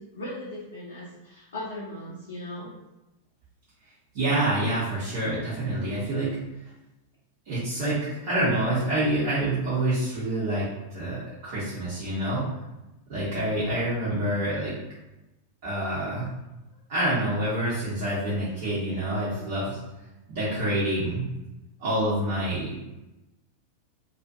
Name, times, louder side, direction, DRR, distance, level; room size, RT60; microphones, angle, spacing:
voice 1, 0.0-2.7, left 1 dB, 65° left, -6 dB, 0.6 m, -38 dB
voice 2, 4.1-6.4 7.5-12.5 13.1-14.7 15.6-16.3 16.9-19.8 20.3-21.3 21.8-22.8, right 1 dB, 50° right, -10 dB, 0.9 m, -27 dB
2.6 x 2.4 x 2.6 m, 0.99 s
figure-of-eight pair, 90°, 0 cm